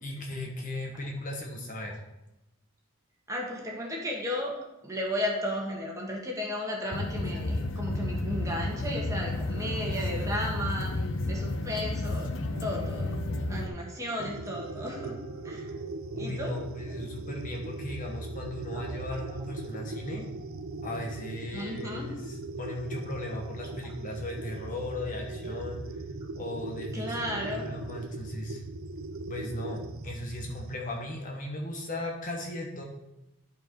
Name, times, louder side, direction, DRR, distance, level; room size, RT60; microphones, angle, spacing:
voice 1, 0.0-2.0 16.1-20.3 20.8-26.0 26.4-28.6 29.3-32.8, left 1 dB, 35° left, 0 dB, 1.2 m, -37 dB
voice 2, 3.3-4.6 4.8-10.9 11.2-12.3 12.6-13.2 13.5-15.2 15.4-15.7 16.2-16.5 18.7-18.8 21.5-22.0 26.9-27.6, equal, 15° right, -1 dB, 1.5 m, -34 dB
sound 1, 6.9-13.7, left 2 dB, 55° left, 0.7 m, -31 dB
sound 2, 12.5-17.6, right 2 dB, 90° right, 1.4 m, -48 dB
sound 3, 14.2-30.8, right 3 dB, 65° right, 0.6 m, -39 dB
11.5 x 4.6 x 4.5 m, 0.93 s
head